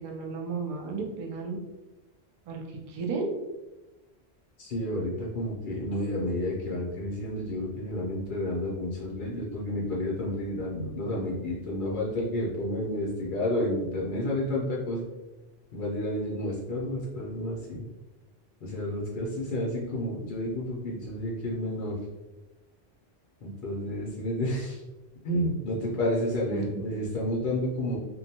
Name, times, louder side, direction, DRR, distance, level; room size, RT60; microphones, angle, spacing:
voice 1, 0.0-1.6 2.5-3.3 26.5-26.8, right 4 dB, 50° right, 0 dB, 0.4 m, -33 dB
voice 2, 4.6-15.1 15.7-17.8 18.6-22.0 23.4-24.8 25.2-28.0, left 1 dB, 60° left, -5 dB, 0.7 m, -30 dB
2.6 x 2.1 x 2.7 m, 1.1 s
omnidirectional pair, 1.1 m